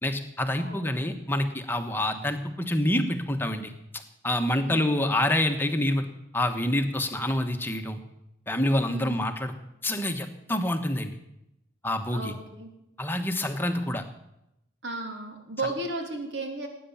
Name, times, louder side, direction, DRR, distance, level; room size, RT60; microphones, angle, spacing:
voice 1, 0.0-6.0 6.3-8.0 8.5-9.5 9.8-11.1 11.8-12.3 13.0-14.0, left 1 dB, 10° left, 6 dB, 1.3 m, -27 dB
voice 2, 8.9-9.2 12.1-12.7 14.8-16.7, right 2 dB, 65° right, 3 dB, 3.4 m, -34 dB
18.5 x 9.5 x 7.3 m, 0.83 s
head